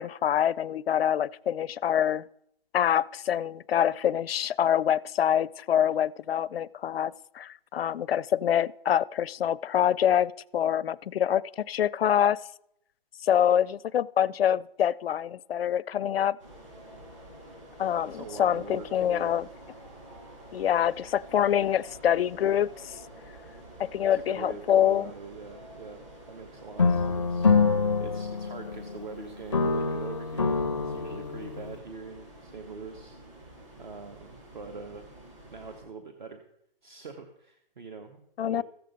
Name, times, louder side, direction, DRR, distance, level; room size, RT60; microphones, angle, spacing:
voice 1, 0.0-2.2 2.7-12.4 13.2-16.4 17.8-19.5 20.5-23.0 23.8-25.1 38.4-38.6, left 10 dB, 85° left, 0.5 m, -25 dB
sound 1, 16.4-35.8, right 1 dB, 30° right, 5.3 m, -49 dB
voice 2, 18.0-19.3 24.1-27.5 28.0-33.2 33.8-35.1 35.5-36.4 36.8-38.6, right 4 dB, 55° right, 1.1 m, -43 dB
sound 2, 26.8-29.1 29.5-31.8, left 4 dB, 30° left, 0.4 m, -26 dB
14.5 x 7.7 x 5.2 m
hypercardioid pair, 180°, 29 cm